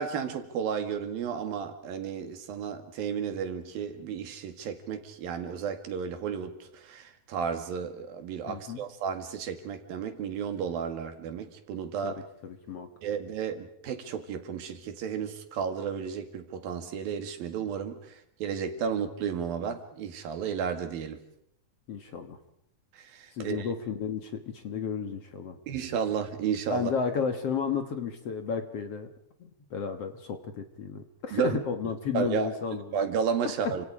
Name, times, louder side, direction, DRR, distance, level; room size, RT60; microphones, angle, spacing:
voice 1, 0.0-12.2 13.0-21.2 22.9-23.7 25.7-26.9 31.3-31.6 32.1-33.9, right 7 dB, 75° right, 3.8 m, -33 dB
voice 2, 8.5-8.8 12.0-12.2 12.4-12.9 21.9-22.4 23.3-25.6 26.7-29.1 29.4-33.0 33.6-33.7, left 6 dB, 50° left, 2.2 m, -32 dB
30.0 x 26.5 x 4.9 m
omnidirectional pair, 4.1 m